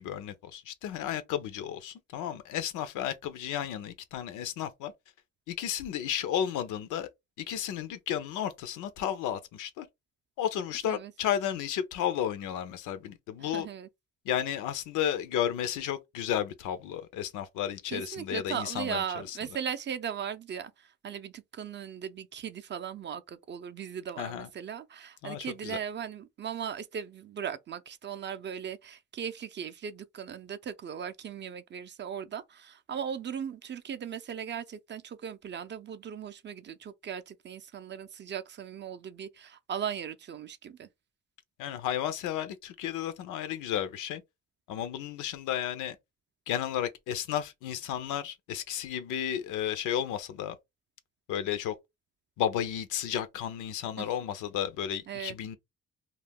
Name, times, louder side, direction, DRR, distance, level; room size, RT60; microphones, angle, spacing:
voice 1, 0.0-4.9 5.5-7.1 7.4-9.9 10.4-13.7 14.3-19.0 19.3-19.4 24.2-24.5 25.2-25.8 41.6-44.2 44.7-46.0 46.5-50.6 51.3-51.7 52.4-55.6, left 10 dB, 90° left, 0.5 m, -33 dB
voice 2, 13.4-13.9 17.9-40.9 54.0-54.1 55.1-55.4, right 8 dB, 40° right, 0.4 m, -38 dB
2.3 x 2.1 x 3.4 m
cardioid pair, 90°, 30 cm